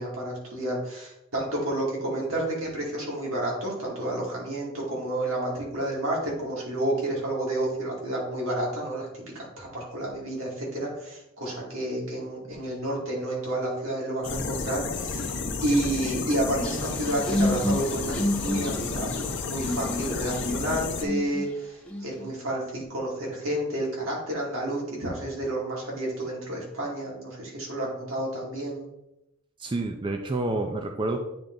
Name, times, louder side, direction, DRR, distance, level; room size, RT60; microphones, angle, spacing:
voice 1, 0.0-28.9, right 1 dB, 80° right, -3 dB, 2.4 m, -30 dB
sound 1, 14.2-21.0, left 4 dB, 60° left, 0.7 m, -31 dB
sound 2, 16.6-21.4 21.9-22.3, left 1 dB, 5° left, 1.0 m, -30 dB
voice 2, 29.6-31.2, right 2 dB, 25° right, 4 dB, 0.4 m, -28 dB
8.7 x 3.4 x 3.9 m, 0.86 s
head